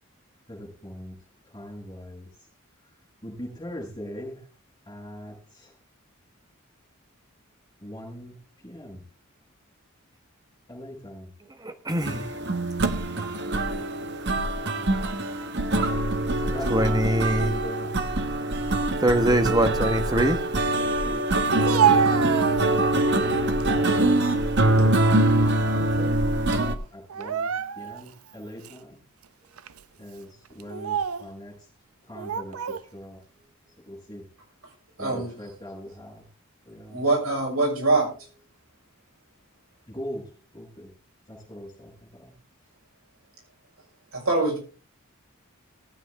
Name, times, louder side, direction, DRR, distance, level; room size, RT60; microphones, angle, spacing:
voice 1, 0.5-1.2 1.4-2.3 3.2-4.4 4.8-5.7 7.8-8.4 8.6-9.0 10.7-11.3 11.9-12.5 14.6-14.9 15.8-16.0 16.4-18.0 20.8-24.0 24.8-25.5 26.5-29.0 30.0-31.7 32.0-33.2 33.9-34.3 35.0-36.3 36.6-37.0 39.9-40.9 41.3-42.3, equal, 20° left, -8 dB, 7.0 m, -41 dB
voice 2, 11.6-12.2 16.7-17.5 19.0-20.4 26.0-26.2, right 1 dB, 20° right, 8 dB, 1.3 m, -23 dB
sound 1, 12.0-26.7, right 1 dB, 55° right, 1.3 m, -24 dB
Speech, 21.5-23.1 23.6-24.2 24.6-25.8 26.1-26.3 27.1-28.1 28.6-28.8 29.6-29.8 30.6-31.3 32.2-32.8, right 7 dB, 90° right, 0.6 m, -27 dB
voice 3, 35.0-35.3 36.9-38.1 44.1-44.6, right 3 dB, 75° right, 0 dB, 6.6 m, -23 dB
19.0 x 9.2 x 3.6 m, 0.38 s
head